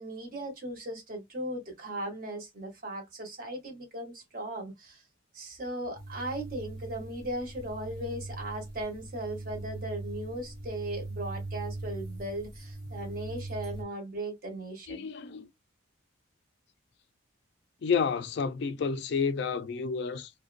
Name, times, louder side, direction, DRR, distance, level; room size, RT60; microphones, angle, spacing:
voice 1, 0.0-5.0 5.3-15.1, right 1 dB, 45° right, 0.9 m, -37 dB
sound 1, 6.0-13.8, right 2 dB, 15° right, 0.7 m, -40 dB
voice 2, 14.9-15.5 17.8-20.3, left 5 dB, 55° left, 0.3 m, -30 dB
2.5 x 2.2 x 2.4 m
head